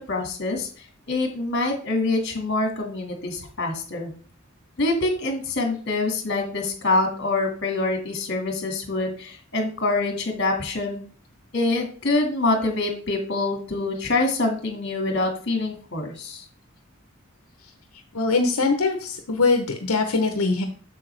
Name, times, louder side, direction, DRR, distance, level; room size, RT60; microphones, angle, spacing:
voice 1, 0.1-0.7 1.1-4.1 4.8-11.0 11.5-16.4, left 2 dB, 55° left, 4 dB, 2.0 m, -25 dB
voice 2, 18.1-20.6, left 3 dB, 85° left, 5 dB, 0.9 m, -22 dB
7.7 x 6.6 x 3.3 m, 0.42 s
head